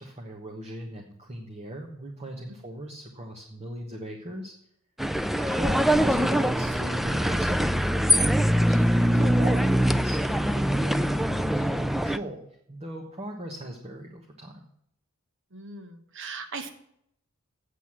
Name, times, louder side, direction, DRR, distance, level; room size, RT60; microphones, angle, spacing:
voice 1, 0.0-4.5 5.6-14.6, equal, 30° right, 1 dB, 1.3 m, -38 dB
sound 1, 5.0-12.2, equal, ahead, 0.4 m, -23 dB
voice 2, 15.5-16.7, right 4 dB, 60° right, 8 dB, 1.4 m, -39 dB
8.3 x 7.9 x 7.5 m, 0.71 s
head